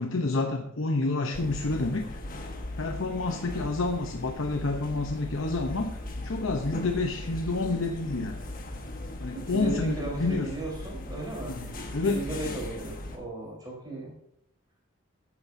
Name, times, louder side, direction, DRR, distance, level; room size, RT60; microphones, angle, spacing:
voice 1, 0.0-2.2 2.8-8.4 9.2-10.5 11.5-12.3, left 3 dB, 80° left, 3 dB, 0.9 m, -29 dB
sound 1, 1.3-13.2, left 1 dB, 45° left, 1.4 m, -38 dB
voice 2, 9.3-11.6 12.0-14.1, right 2 dB, 20° right, -2 dB, 4.1 m, -36 dB
13.0 x 9.6 x 2.7 m, 0.74 s
head